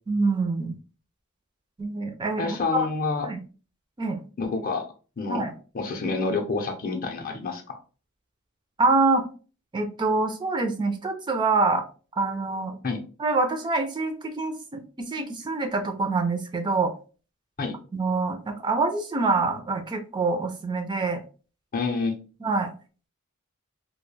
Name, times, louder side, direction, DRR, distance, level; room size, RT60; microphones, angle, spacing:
voice 1, 0.1-0.7 1.8-2.9 3.2-3.4 4.0-4.2 5.3-5.5 8.8-9.2 9.7-11.8 12.2-12.8 13.2-16.9 17.9-21.2 22.4-22.7, right 3 dB, 20° right, 5 dB, 0.3 m, -25 dB
voice 2, 2.4-3.3 4.4-4.9 5.2-5.5 5.7-7.8 12.8-13.0 17.6-17.8 21.7-22.2, left 4 dB, 40° left, 3 dB, 0.5 m, -28 dB
2.3 x 2.1 x 3.1 m, 0.36 s
head